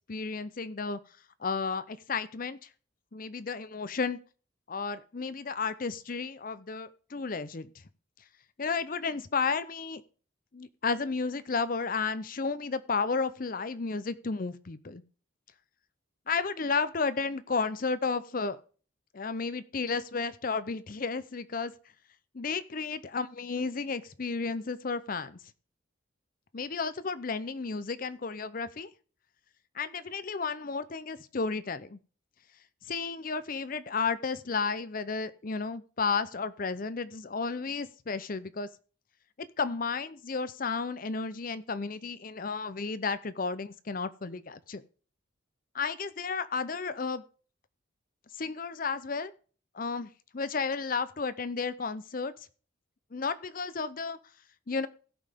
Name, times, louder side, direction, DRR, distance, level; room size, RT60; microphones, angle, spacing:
voice 1, 0.1-1.0 1.4-2.6 3.1-4.2 4.7-7.7 8.6-10.0 10.5-15.0 16.3-18.6 19.1-21.7 22.3-25.4 26.5-28.9 29.7-32.0 32.9-38.7 39.6-44.8 45.7-47.2 48.4-49.3 49.7-52.3 53.1-54.2 54.7-54.9, left 4 dB, 45° left, 0.6 m, -32 dB
16.0 x 5.6 x 3.5 m
head